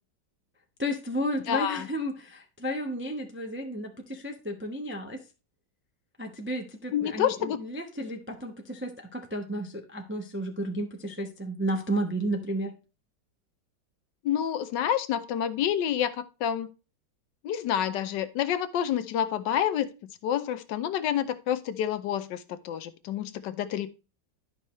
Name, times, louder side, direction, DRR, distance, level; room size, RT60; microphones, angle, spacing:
voice 1, 0.8-5.2 6.2-12.7, equal, 15° right, 0.4 m, -32 dB
voice 2, 1.5-1.9 6.9-7.6 14.2-16.7 17.4-19.9 20.2-23.9, left 9 dB, 75° left, 1.3 m, -28 dB
11.5 x 5.4 x 3.1 m
omnidirectional pair, 2.0 m